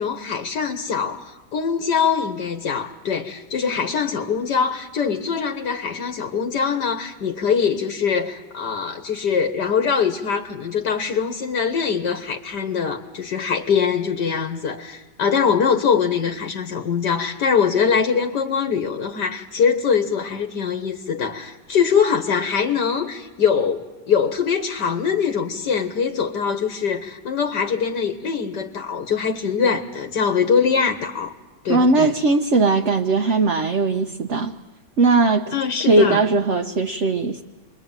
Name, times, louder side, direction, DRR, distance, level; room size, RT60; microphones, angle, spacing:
voice 1, 0.0-31.3 31.6-32.1 35.5-36.2, left 6 dB, 75° left, 2.0 m, -23 dB
voice 2, 31.7-34.5 35.0-35.5 35.8-37.4, right 3 dB, 45° right, 1.2 m, -19 dB
28.5 x 23.0 x 9.0 m
omnidirectional pair, 1.9 m